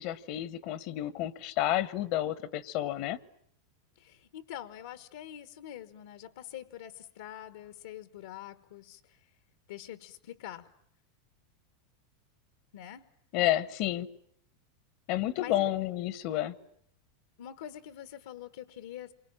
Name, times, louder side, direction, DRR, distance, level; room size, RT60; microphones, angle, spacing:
voice 1, 0.0-3.2 13.3-14.1 15.1-16.5, left 13 dB, 55° left, 1.0 m, -30 dB
voice 2, 4.0-9.2 9.7-10.7 12.7-13.1 15.4-15.7 17.4-19.1, left 11 dB, 80° left, 1.3 m, -45 dB
28.0 x 24.0 x 8.8 m
supercardioid pair, 125°, 0 cm